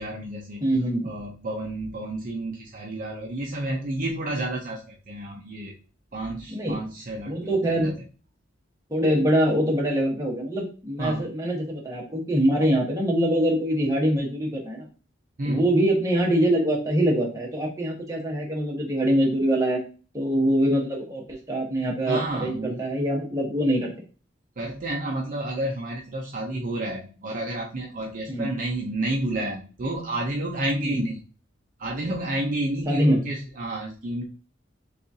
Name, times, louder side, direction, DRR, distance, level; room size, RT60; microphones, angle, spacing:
voice 1, 0.0-0.6 1.0-5.7 6.1-8.0 11.0-11.2 15.4-15.7 22.1-22.8 24.6-31.2 31.8-34.2, right 1 dB, 45° right, 0 dB, 0.6 m, -30 dB
voice 2, 0.6-1.1 6.5-6.8 7.3-7.9 8.9-14.9 15.4-19.8 20.1-23.9 28.3-28.5 30.8-31.0 32.9-33.2, right 1 dB, 15° right, -2 dB, 1.1 m, -24 dB
6.6 x 2.4 x 2.7 m, 0.36 s
head